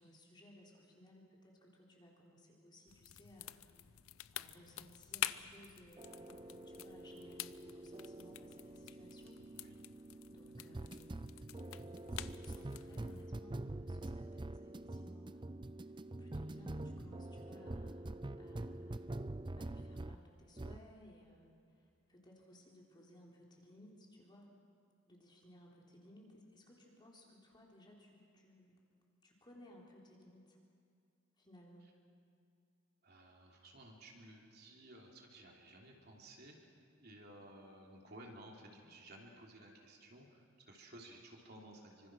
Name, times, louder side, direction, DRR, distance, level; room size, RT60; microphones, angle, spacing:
voice 1, 0.0-3.7 4.3-9.5 10.3-11.4 12.1-15.5 15.8-19.3 19.5-24.5 25.1-28.8 29.2-30.6 31.4-31.8, equal, 20° left, -2 dB, 3.7 m, -61 dB
sound 1, 2.9-13.3, left 12 dB, 90° left, 0.6 m, -48 dB
sound 2, 6.0-20.2 20.6-20.9, right 2 dB, 25° right, 0.5 m, -46 dB
voice 2, 9.4-9.8 33.0-36.7 37.0-42.1, right 1 dB, 50° right, 0 dB, 3.3 m, -56 dB
26.0 x 25.0 x 6.3 m, 2.4 s
head